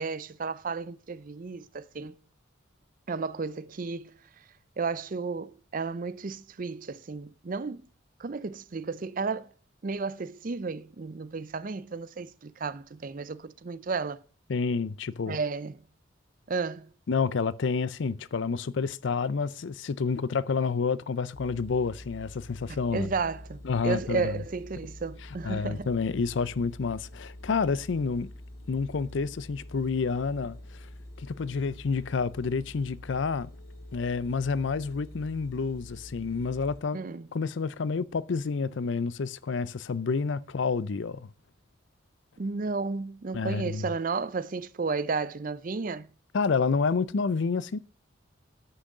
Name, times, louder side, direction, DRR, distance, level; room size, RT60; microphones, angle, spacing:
voice 1, 0.0-2.2 3.1-4.1 4.8-7.8 8.2-9.5 9.8-14.2 15.3-15.8 16.5-16.9 22.7-25.9 36.9-37.3 42.4-46.1, right 4 dB, 45° right, 0.5 m, -33 dB
voice 2, 14.5-15.4 17.1-23.1 23.6-24.4 25.4-28.3 28.7-30.8 31.2-33.5 33.9-37.0 37.3-41.3 43.3-43.9 46.3-47.8, left 5 dB, 65° left, 0.5 m, -29 dB
sound 1, 21.3-36.8, left 1 dB, 50° left, 2.5 m, -46 dB
9.8 x 6.3 x 6.5 m
head